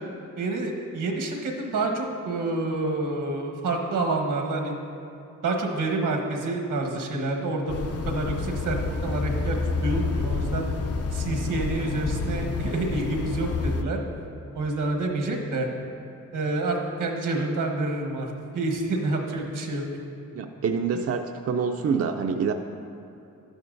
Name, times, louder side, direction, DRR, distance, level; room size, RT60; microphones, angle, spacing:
voice 1, 0.4-4.8 5.4-7.8 8.0-8.8 9.0-9.6 9.8-10.7 11.1-14.0 14.5-15.7 16.3-18.3 18.5-19.8, right 2 dB, 85° right, 2 dB, 1.2 m, -28 dB
sound 1, 7.7-13.8, left 4 dB, 50° left, 0.5 m, -29 dB
voice 2, 20.3-22.5, right 6 dB, 50° right, 5 dB, 0.4 m, -26 dB
11.5 x 9.5 x 2.6 m, 2.8 s
wide cardioid pair, 135°, 31 cm